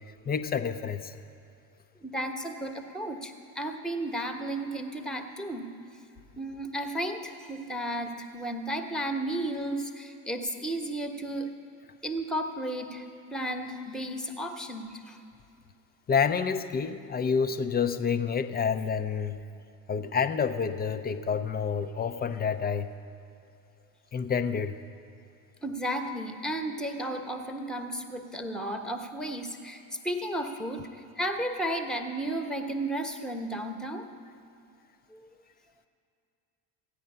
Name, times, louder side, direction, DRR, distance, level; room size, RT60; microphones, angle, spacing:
voice 1, 0.3-1.1 16.1-19.4 19.9-22.9 24.1-24.8, left 6 dB, 20° left, 9 dB, 0.5 m, -28 dB
voice 2, 2.0-5.7 6.4-11.5 12.0-15.2 25.6-34.1 35.1-35.3, right 1 dB, ahead, 5 dB, 1.0 m, -33 dB
14.5 x 9.3 x 5.5 m, 2.6 s
hypercardioid pair, 75°, 50 cm